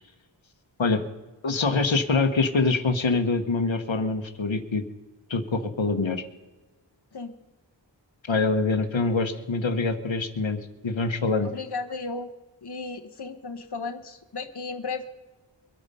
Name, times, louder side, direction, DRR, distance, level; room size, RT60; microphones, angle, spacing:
voice 1, 1.4-4.8 5.3-6.2 8.3-11.5, left 3 dB, 80° left, 8 dB, 1.1 m, -25 dB
voice 2, 11.4-12.3 12.6-15.0, left 4 dB, 60° left, 6 dB, 1.1 m, -34 dB
23.0 x 8.8 x 5.5 m, 1.2 s
wide cardioid pair, 50°, 45 cm